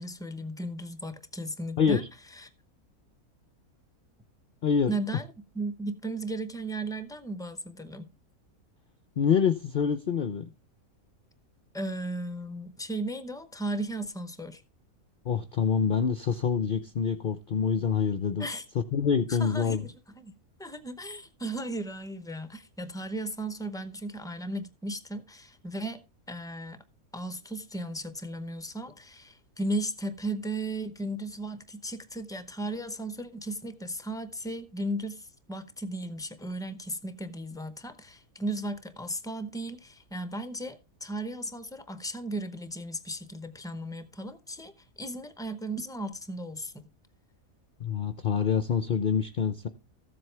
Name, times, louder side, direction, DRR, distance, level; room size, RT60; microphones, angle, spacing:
voice 1, 0.0-2.5 4.9-5.3 5.5-8.1 11.7-14.6 18.4-18.6 19.3-20.3 20.6-26.0 26.3-26.8 27.1-46.9, right 1 dB, 5° left, 0.5 m, -36 dB
voice 2, 9.2-10.4 15.3-18.5 18.9-19.9 47.8-49.7, left 7 dB, 55° left, 0.6 m, -26 dB
14.0 x 7.8 x 3.3 m
omnidirectional pair, 1.6 m